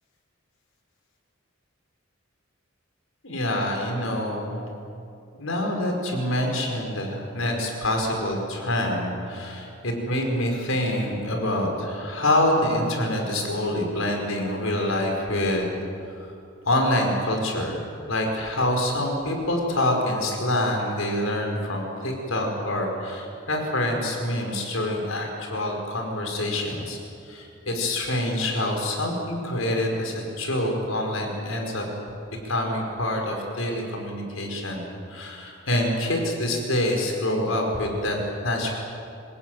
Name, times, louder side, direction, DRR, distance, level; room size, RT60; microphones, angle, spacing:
voice 1, 3.2-4.8 5.4-15.7 16.7-27.0 27.2-31.8 32.4-34.8 35.1-38.2 38.4-38.7, left 1 dB, 85° left, 2 dB, 5.3 m, -26 dB
26.5 x 17.0 x 9.4 m, 2.6 s
head